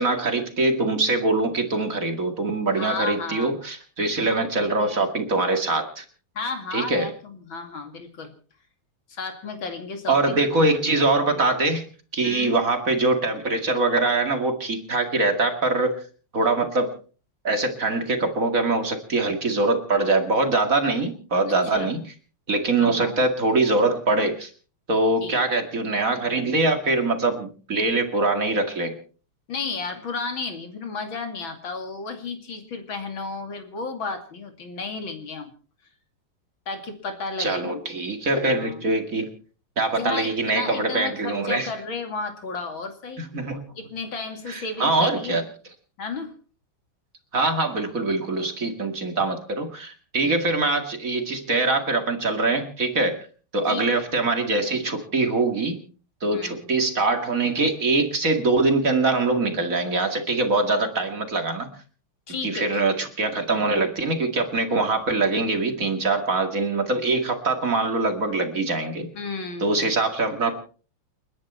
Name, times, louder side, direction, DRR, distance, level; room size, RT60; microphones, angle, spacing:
voice 1, 0.0-6.0 6.7-7.1 10.1-11.8 12.1-16.0 16.3-16.9 17.4-22.0 22.5-24.5 24.9-29.0 37.4-39.3 39.8-41.7 43.3-43.6 44.5-45.4 47.3-53.2 53.5-55.8 56.2-61.7 62.4-69.1 69.6-70.5, right 2 dB, 40° right, 5 dB, 2.6 m, -23 dB
voice 2, 2.7-3.6 6.3-8.3 9.1-10.4 12.2-12.6 21.5-21.9 22.8-23.1 25.2-25.4 29.5-35.5 36.7-37.8 38.6-38.9 39.9-43.3 43.8-45.4 46.0-46.4 50.2-50.4 53.7-53.9 56.3-56.7 62.3-62.8 69.1-69.7, left 4 dB, 70° left, 6 dB, 3.3 m, -33 dB
29.5 x 10.5 x 4.4 m, 0.41 s
omnidirectional pair, 2.2 m